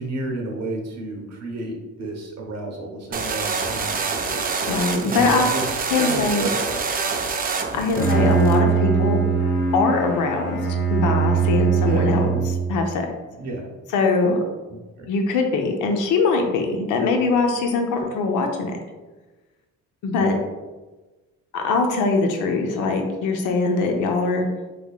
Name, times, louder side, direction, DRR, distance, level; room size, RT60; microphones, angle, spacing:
voice 1, 0.0-4.6 5.0-5.6 5.9-6.8 7.8-8.4 11.8-12.4 13.4-13.7 14.7-15.1 20.2-20.3, right 2 dB, 60° right, 1 dB, 1.0 m, -31 dB
sound 1, 3.1-8.6, right 5 dB, 30° right, 0.4 m, -26 dB
voice 2, 4.7-5.6 5.9-6.5 7.7-9.2 9.7-10.6 10.9-13.1 13.9-14.4 15.1-18.8 20.0-20.4 21.5-24.5, left 3 dB, 85° left, 4 dB, 0.6 m, -22 dB
Bowed string instrument, 7.7-12.8, right 5 dB, 50° left, 1.0 m, -21 dB
3.6 x 3.3 x 2.3 m, 1.2 s
cardioid pair, 90°, 30 cm